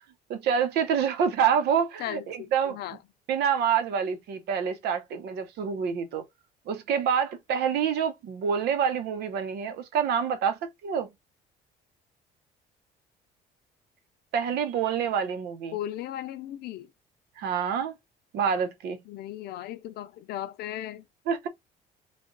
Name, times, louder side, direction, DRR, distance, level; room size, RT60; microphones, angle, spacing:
voice 1, 0.3-2.8 3.3-6.2 6.7-11.1 14.3-15.7 17.4-17.9 18.3-19.0 21.3-21.5, right 7 dB, 75° right, 1.0 m, -27 dB
voice 2, 2.0-3.0 15.7-16.9 19.1-21.1, left 12 dB, 70° left, 0.6 m, -36 dB
3.4 x 2.3 x 3.9 m
cardioid pair, 110°, 17 cm